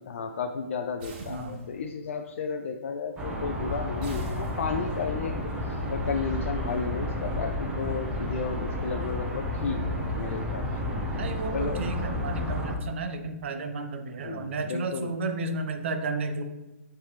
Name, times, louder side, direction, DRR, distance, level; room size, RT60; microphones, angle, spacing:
voice 1, 0.0-5.4 5.6-10.9 11.5-11.8 14.2-15.1, left 5 dB, 65° left, 5 dB, 0.4 m, -33 dB
sound 1, 1.0-2.0 4.0-5.1, right 1 dB, 40° right, 1.3 m, -45 dB
voice 2, 1.3-1.6 11.2-16.4, right 3 dB, 55° right, 6 dB, 0.8 m, -32 dB
sound 2, 3.2-12.8, left 1 dB, 15° right, 0.9 m, -31 dB
9.4 x 3.4 x 3.2 m, 1.1 s
hypercardioid pair, 145°, 7 cm